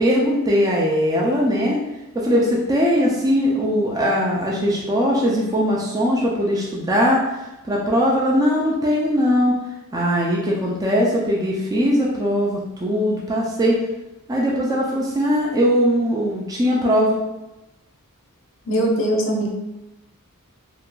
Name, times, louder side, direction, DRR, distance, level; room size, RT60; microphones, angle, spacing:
voice 1, 0.0-1.8 2.1-7.2 7.6-9.6 9.9-13.8 14.3-17.2, equal, 15° right, -4 dB, 0.3 m, -20 dB
voice 2, 18.7-19.5, right 1 dB, 60° left, 0 dB, 0.5 m, -21 dB
2.8 x 2.4 x 2.2 m, 0.97 s
head